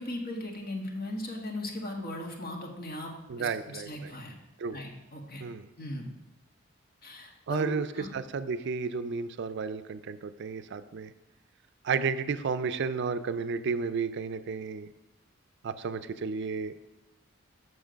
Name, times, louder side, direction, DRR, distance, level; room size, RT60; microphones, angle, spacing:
voice 1, 0.0-4.3 4.7-5.4 5.8-6.1 7.0-8.1, left 1 dB, 50° left, 1 dB, 1.3 m, -38 dB
voice 2, 3.3-4.1 4.6-4.8 5.4-5.7 7.5-7.9 8.1-11.1 11.8-14.9 15.6-16.8, right 5 dB, 60° right, 12 dB, 0.4 m, -32 dB
7.3 x 6.3 x 5.1 m, 1.0 s
head